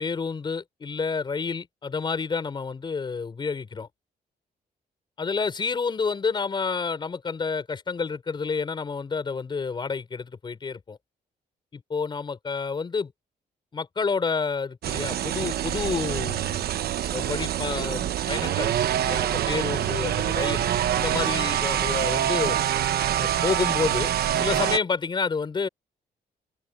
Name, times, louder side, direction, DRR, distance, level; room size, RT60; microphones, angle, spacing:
voice 1, 0.0-3.9 5.2-11.0 11.7-13.1 13.7-16.6 17.1-22.6 23.2-25.7, left 5 dB, 30° left, 6.1 m, -29 dB
sound 1, 14.8-24.8, right 11 dB, 70° right, 1.0 m, -25 dB
open air
wide cardioid pair, 170°, 16 cm